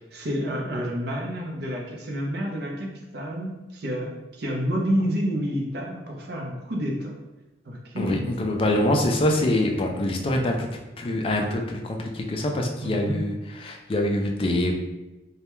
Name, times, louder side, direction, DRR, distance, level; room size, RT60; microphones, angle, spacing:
voice 1, 0.0-7.2 7.7-8.3 12.8-13.2, equal, 65° right, -1 dB, 0.5 m, -29 dB
voice 2, 8.0-10.7 11.0-14.8, left 1 dB, 30° left, 2 dB, 0.3 m, -25 dB
2.2 x 2.1 x 2.9 m, 1.0 s
head